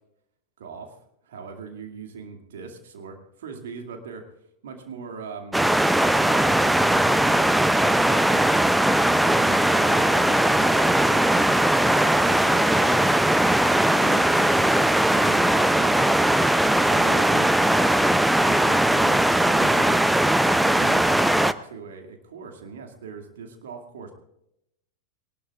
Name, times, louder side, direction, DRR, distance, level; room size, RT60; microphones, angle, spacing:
voice 1, 0.6-1.0 1.2-4.3 4.6-5.6 6.2-8.6 9.1-16.3 16.7-18.0 18.4-20.1 20.5-24.1, right 5 dB, 60° right, 3 dB, 2.4 m, -40 dB
sound 1, 5.5-21.5, right 1 dB, 5° right, 0.5 m, -19 dB
22.0 x 19.0 x 2.5 m, 0.79 s
figure-of-eight pair, 90°, 0 cm